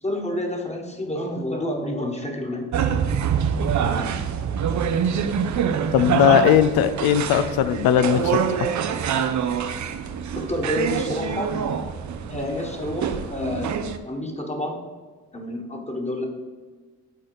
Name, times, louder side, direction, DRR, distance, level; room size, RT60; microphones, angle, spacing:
voice 1, 0.0-2.7 3.9-4.3 10.3-11.6 12.3-13.8 14.1-14.8 15.3-16.3, left 1 dB, 20° left, 1 dB, 1.4 m, -29 dB
sound 1, 2.7-14.0, right 7 dB, 50° right, 0.6 m, -25 dB
voice 2, 5.9-8.7, left 9 dB, 70° left, 12 dB, 0.6 m, -19 dB
6.6 x 4.2 x 5.0 m, 1.4 s
hypercardioid pair, 40°, 37 cm